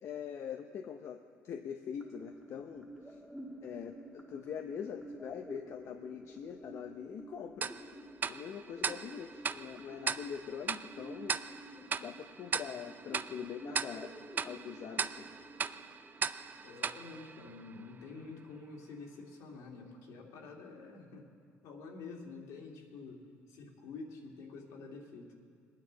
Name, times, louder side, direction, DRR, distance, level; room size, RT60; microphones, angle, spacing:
voice 1, 0.0-3.2 3.6-8.0 8.3-14.1 14.4-15.3 15.6-15.8, left 7 dB, 55° left, 5 dB, 0.7 m, -43 dB
sound 1, 2.0-18.0, equal, ahead, 1.6 m, -52 dB
Tick-tock, 7.6-18.1, right 6 dB, 35° right, 0.4 m, -39 dB
voice 2, 16.6-21.3 21.6-25.3, left 4 dB, 75° left, 0 dB, 2.3 m, -48 dB
21.0 x 9.7 x 4.0 m, 2.2 s
cardioid pair, 100°, 6 cm